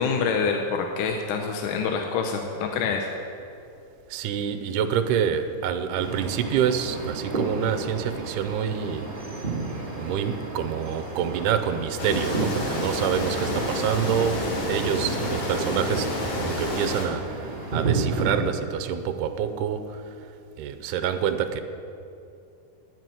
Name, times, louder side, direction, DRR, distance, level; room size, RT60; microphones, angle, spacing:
voice 1, 0.0-3.1, left 5 dB, 80° left, 3 dB, 2.2 m, -26 dB
voice 2, 4.1-9.1 10.0-17.4 17.7-20.0 20.6-21.6, right 8 dB, 80° right, 9 dB, 2.1 m, -27 dB
sound 1, 5.9-18.3, right 3 dB, 35° right, 0.8 m, -32 dB
sound 2, 12.0-17.1, left 1 dB, 50° left, 2.5 m, -29 dB
11.0 x 6.2 x 9.2 m, 2.6 s
omnidirectional pair, 3.7 m